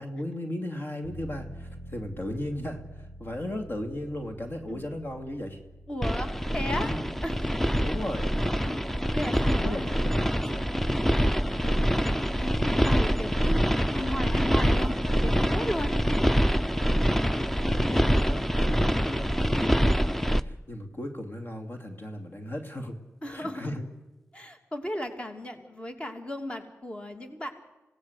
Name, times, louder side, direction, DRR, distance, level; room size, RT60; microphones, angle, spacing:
voice 1, 0.0-5.6 6.7-7.0 7.8-8.3 9.3-10.7 17.0-23.0 23.3-23.8, left 1 dB, 45° left, 6 dB, 2.7 m, -37 dB
sound 1, 1.0-13.5 13.9-14.0, equal, 75° left, 5.6 m, -48 dB
voice 2, 5.9-6.9 7.2-7.5 8.6-8.8 9.1-10.0 10.9-11.3 11.6-11.8 12.4-12.5 12.9-13.7 13.9-15.0 15.2-15.9 23.2-23.8 24.3-27.5, left 1 dB, 20° left, 6 dB, 3.0 m, -35 dB
sound 2, 6.0-20.4, equal, 5° left, 0.8 m, -25 dB
26.5 x 18.0 x 8.2 m, 1.0 s
cardioid pair, 65°, 5 cm